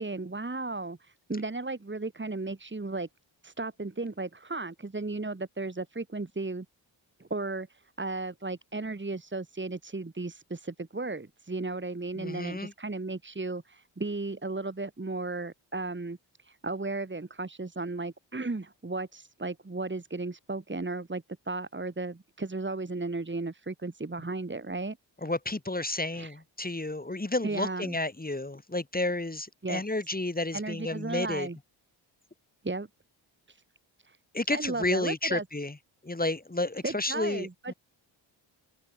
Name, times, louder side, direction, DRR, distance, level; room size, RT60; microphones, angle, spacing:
voice 1, 0.0-3.1 3.4-6.6 7.2-16.2 16.4-25.0 26.1-26.4 27.4-28.0 29.6-29.8 30.5-31.6 32.6-32.9 33.5-33.6 34.0-34.2 34.5-35.4 36.8-37.7, right 3 dB, 25° right, 3.4 m, -35 dB
voice 2, 12.2-12.7 25.2-31.5 34.3-35.8 36.0-37.7, left 2 dB, 20° left, 5.1 m, -31 dB
cardioid pair, 60°, 47 cm